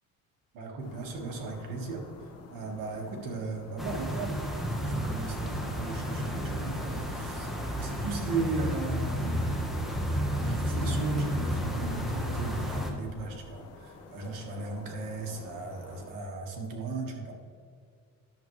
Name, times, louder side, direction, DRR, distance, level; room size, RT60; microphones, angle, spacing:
voice 1, 0.5-2.1 2.5-4.4 4.8-9.5 10.3-17.3, right 3 dB, 85° right, 1 dB, 1.7 m, -36 dB
sound 1, 0.8-16.1, left 4 dB, 50° left, 1.1 m, -50 dB
sound 2, 3.8-12.9, equal, ahead, 1.1 m, -32 dB
11.0 x 7.4 x 3.2 m, 2.2 s
cardioid pair, 140°, 32 cm